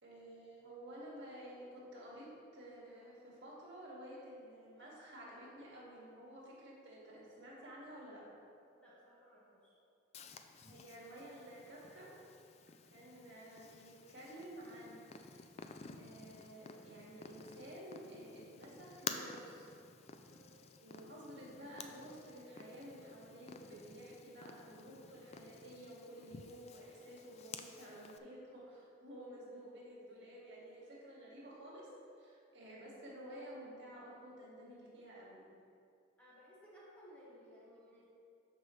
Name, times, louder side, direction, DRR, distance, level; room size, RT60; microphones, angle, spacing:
voice 1, 0.0-2.3 2.5-8.2 10.6-12.1 12.9-15.0 16.0-19.7 20.8-31.9 32.2-35.4, equal, 60° right, -6 dB, 2.1 m, -52 dB
voice 2, 8.7-9.7 20.3-20.5 36.2-38.1, equal, 5° left, -8 dB, 1.7 m, -59 dB
Purr, 10.1-28.2, left 5 dB, 35° left, 0.4 m, -52 dB
12.5 x 5.2 x 3.2 m, 2.5 s
head